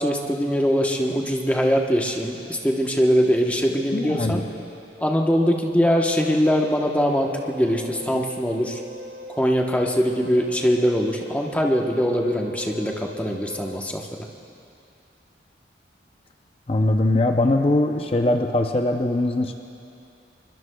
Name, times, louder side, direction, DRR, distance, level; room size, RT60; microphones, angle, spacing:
voice 1, 0.0-4.4 5.0-8.8 9.3-14.3, equal, 10° left, 0 dB, 1.0 m, -22 dB
voice 2, 3.9-4.4 16.7-19.6, left 2 dB, 30° left, 4 dB, 0.5 m, -21 dB
Wind instrument woodwind instrument, 6.0-13.8, left 1 dB, 90° right, 1.7 m, -40 dB
24.0 x 22.0 x 2.3 m, 2.6 s
head